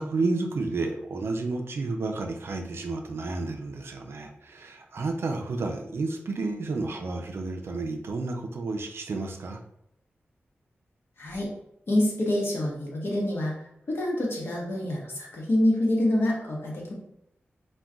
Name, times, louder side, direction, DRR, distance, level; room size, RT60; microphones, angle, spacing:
voice 1, 0.0-9.6, right 3 dB, 70° right, 4 dB, 0.4 m, -31 dB
voice 2, 11.9-13.5 13.9-16.9, left 1 dB, 65° left, -2 dB, 0.9 m, -26 dB
2.3 x 2.2 x 3.7 m, 0.77 s
wide cardioid pair, 110°, 4 cm